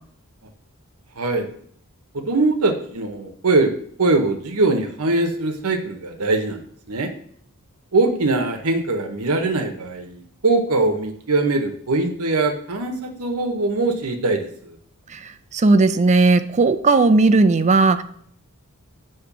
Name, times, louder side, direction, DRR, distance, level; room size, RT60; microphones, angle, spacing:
voice 1, 1.2-1.5 2.1-3.7 4.0-6.6 6.9-7.1 7.9-14.7, right 2 dB, 80° right, 5 dB, 1.0 m, -22 dB
voice 2, 15.1-18.0, right 3 dB, 30° right, 10 dB, 0.5 m, -16 dB
8.4 x 3.2 x 5.9 m, 0.62 s
head